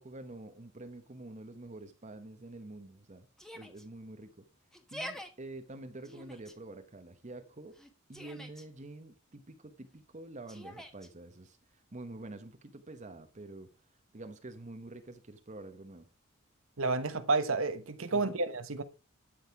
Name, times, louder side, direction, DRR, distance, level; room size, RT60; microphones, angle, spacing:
voice 1, 0.0-3.3 3.5-4.5 4.9-7.8 8.1-13.7 14.1-16.1 18.1-18.4, right 2 dB, 35° right, 1.0 m, -47 dB
Yell, 3.4-3.8 4.7-5.3 6.0-6.5 7.7-8.7 10.5-11.1, equal, ahead, 1.4 m, -45 dB
voice 2, 16.8-18.8, right 3 dB, 70° right, 1.2 m, -30 dB
12.0 x 6.4 x 4.8 m
head